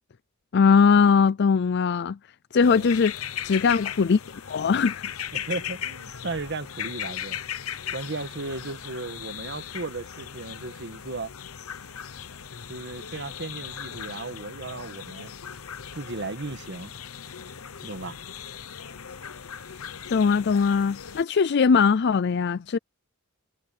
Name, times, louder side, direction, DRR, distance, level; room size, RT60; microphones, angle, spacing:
voice 1, 0.5-2.2 2.5-3.1 3.4-4.2 4.5-5.1 20.1-22.8, left 5 dB, 55° left, 0.4 m, -20 dB
sound 1, 2.6-21.2, left 9 dB, 90° left, 1.0 m, -38 dB
voice 2, 5.3-7.4 7.9-11.3 12.7-15.3 15.9-16.9 17.8-18.2, right 3 dB, 55° right, 1.4 m, -35 dB
head